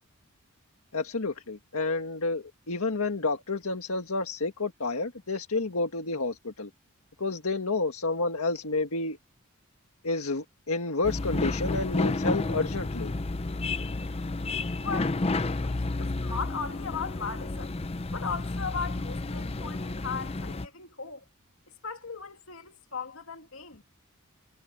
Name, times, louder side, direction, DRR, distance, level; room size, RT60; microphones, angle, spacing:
voice 1, 0.9-6.7 7.2-9.2 10.0-13.1, left 3 dB, 85° left, 1.8 m, -30 dB
sound 1, 11.0-20.7, left 2 dB, 30° left, 0.5 m, -31 dB
voice 2, 14.7-17.7 18.1-21.2 21.8-23.8, left 5 dB, 70° left, 2.3 m, -37 dB
head